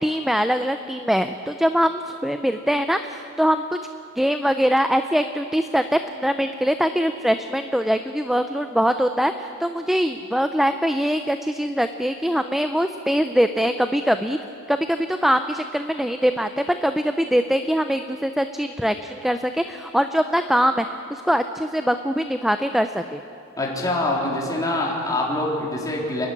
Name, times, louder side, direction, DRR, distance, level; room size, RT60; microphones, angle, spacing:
voice 1, 0.0-3.8 4.2-14.4 14.7-20.9 21.1-23.2, equal, ahead, 8 dB, 0.5 m, -22 dB
voice 2, 23.6-26.3, left 1 dB, 15° left, -3 dB, 3.9 m, -24 dB
27.5 x 12.0 x 9.9 m, 2.6 s
head